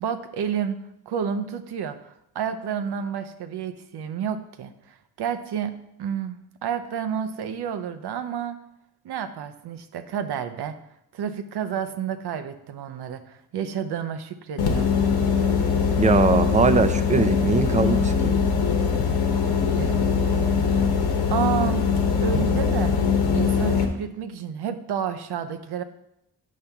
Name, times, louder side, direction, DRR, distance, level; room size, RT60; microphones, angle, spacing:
voice 1, 0.0-4.7 5.2-8.6 9.0-10.7 11.1-14.9 19.8-20.4 21.3-21.9 22.2-22.9 23.3-25.8, right 8 dB, 85° right, 9 dB, 0.8 m, -30 dB
sound 1, 14.6-23.9, left 6 dB, 90° left, 1.1 m, -22 dB
voice 2, 16.0-18.3, right 4 dB, 20° right, 10 dB, 0.4 m, -21 dB
8.4 x 5.6 x 3.5 m, 0.81 s
cardioid pair, 105°, 38 cm